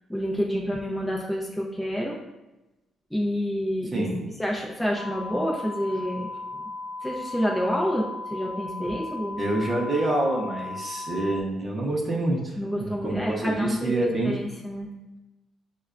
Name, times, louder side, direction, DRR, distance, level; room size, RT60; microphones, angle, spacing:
voice 1, 0.1-2.2 3.1-4.1 4.4-6.7 7.0-9.4 12.6-13.9 14.2-14.9, equal, 5° left, -3 dB, 0.5 m, -28 dB
sound 1, 4.9-11.4, left 3 dB, 90° right, 0.5 m, -36 dB
voice 2, 9.4-14.3, right 1 dB, 35° right, -2 dB, 0.7 m, -27 dB
5.5 x 2.1 x 2.4 m, 1.0 s
cardioid pair, 90°, 0 cm